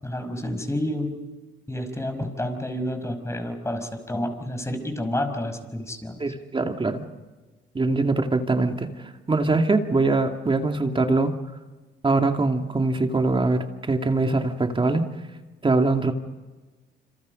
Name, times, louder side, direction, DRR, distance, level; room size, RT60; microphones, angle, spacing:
voice 1, 0.0-1.2 1.7-6.2, left 1 dB, 15° left, 7 dB, 5.4 m, -29 dB
voice 2, 6.2-7.0 7.7-11.3 12.0-15.0 15.6-16.1, right 3 dB, 25° right, 4 dB, 2.4 m, -23 dB
27.5 x 27.0 x 5.4 m, 1.2 s
cardioid pair, 90°, 20 cm